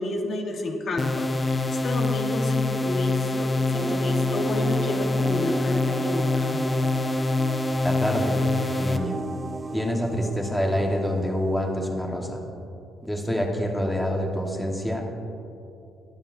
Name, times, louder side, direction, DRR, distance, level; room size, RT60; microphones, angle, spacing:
voice 1, 0.0-6.7, left 2 dB, 55° left, 2 dB, 1.2 m, -31 dB
sound 1, 1.0-9.0, left 2 dB, 25° left, 0.6 m, -25 dB
sound 2, 3.7-12.1, right 3 dB, 30° right, 0.3 m, -35 dB
voice 2, 7.8-8.4 8.8-9.2 9.7-12.4 13.0-15.0, equal, 5° left, 1 dB, 1.2 m, -26 dB
20.0 x 7.0 x 2.6 m, 2.7 s
cardioid pair, 90°, 0 cm